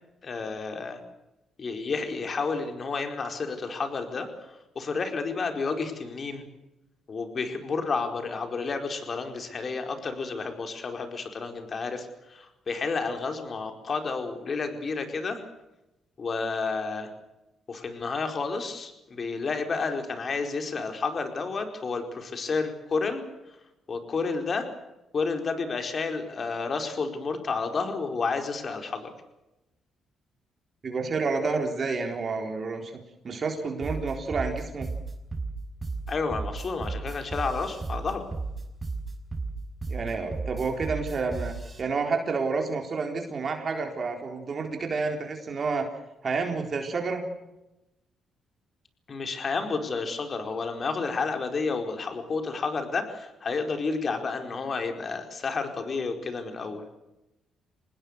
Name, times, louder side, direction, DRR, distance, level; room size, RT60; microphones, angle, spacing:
voice 1, 0.2-1.0 1.6-6.5 7.1-15.4 16.2-17.1 17.7-23.2 23.9-24.7 25.1-29.1 36.1-38.2 49.1-56.8, left 4 dB, 45° left, 6 dB, 4.7 m, -31 dB
voice 2, 30.8-32.9 33.2-34.9 39.9-45.9 46.2-47.2, right 4 dB, 45° right, 4 dB, 4.0 m, -29 dB
sound 1, 33.8-41.8, right 3 dB, 20° right, 5.7 m, -34 dB
26.0 x 20.0 x 6.7 m, 0.95 s
cardioid pair, 90°, 0 cm